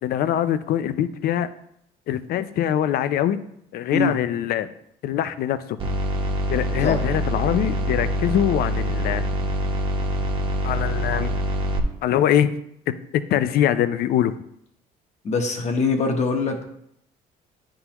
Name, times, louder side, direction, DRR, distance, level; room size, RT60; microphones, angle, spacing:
voice 1, 0.0-1.5 2.1-3.4 3.7-4.7 5.0-5.8 6.5-9.2 10.6-11.3 12.0-12.5 13.3-14.3, left 10 dB, 65° left, 13 dB, 0.5 m, -23 dB
sound 1, 5.8-11.8, equal, 30° right, 1.0 m, -25 dB
voice 2, 15.2-16.6, left 4 dB, 40° left, 4 dB, 1.1 m, -23 dB
9.6 x 3.8 x 3.0 m, 0.74 s
cardioid pair, 110°, 17 cm